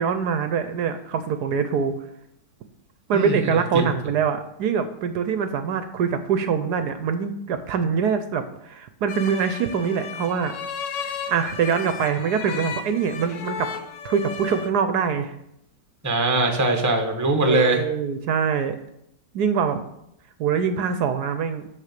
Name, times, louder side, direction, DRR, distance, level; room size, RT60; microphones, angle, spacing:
voice 1, 0.0-2.0 3.1-10.5 11.0-13.7 14.0-15.3 17.4-18.8 19.3-19.8 20.4-21.6, right 6 dB, 70° right, 9 dB, 1.1 m, -24 dB
sound 1, 9.1-14.7, left 5 dB, 85° left, 1.5 m, -34 dB
voice 2, 16.0-17.8, right 2 dB, 15° right, 4 dB, 0.8 m, -21 dB
6.6 x 6.2 x 6.6 m, 0.79 s
omnidirectional pair, 1.9 m